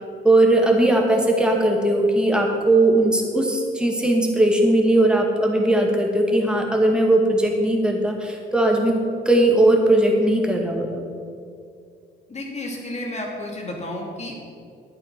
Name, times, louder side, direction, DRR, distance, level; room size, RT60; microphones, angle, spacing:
voice 1, 0.2-9.0 9.3-11.0, right 1 dB, 5° right, 0 dB, 2.1 m, -19 dB
voice 2, 12.3-14.4, left 1 dB, 35° left, 0 dB, 2.8 m, -31 dB
11.0 x 8.4 x 6.1 m, 2.3 s
cardioid pair, 90°, 20 cm